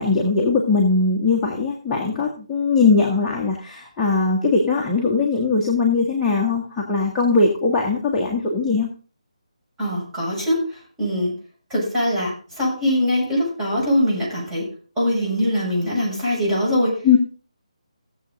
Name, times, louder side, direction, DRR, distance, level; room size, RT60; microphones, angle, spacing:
voice 1, 0.0-8.9 17.0-17.2, left 4 dB, 10° left, -5 dB, 1.5 m, -20 dB
voice 2, 9.8-11.3 11.7-14.7 15.0-16.9, equal, 15° right, -7 dB, 7.2 m, -22 dB
16.5 x 7.7 x 3.9 m, 0.39 s
figure-of-eight pair, 150°, 4 cm